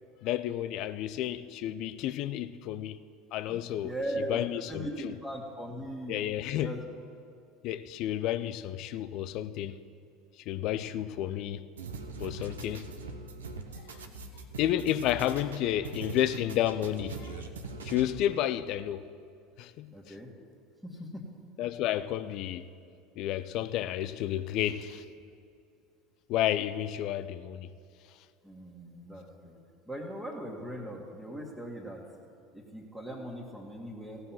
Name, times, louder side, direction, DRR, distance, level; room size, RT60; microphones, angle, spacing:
voice 1, 0.2-3.0 3.3-3.9 4.3-5.2 6.1-6.7 7.6-9.8 10.5-11.7 12.2-12.9 14.6-17.5 17.8-19.1 19.6-20.1 21.6-22.7 23.2-25.0 26.3-27.7, left 12 dB, 55° left, 0.5 m, -31 dB
voice 2, 3.5-6.2 6.6-6.8 19.9-20.3 20.8-21.4 28.4-29.6 29.9-32.1 32.5-34.3, right 1 dB, 5° right, 1.8 m, -39 dB
sound 1, 11.8-18.4, right 3 dB, 85° right, 0.7 m, -42 dB
15.5 x 5.7 x 7.6 m
hypercardioid pair, 75°, 0 cm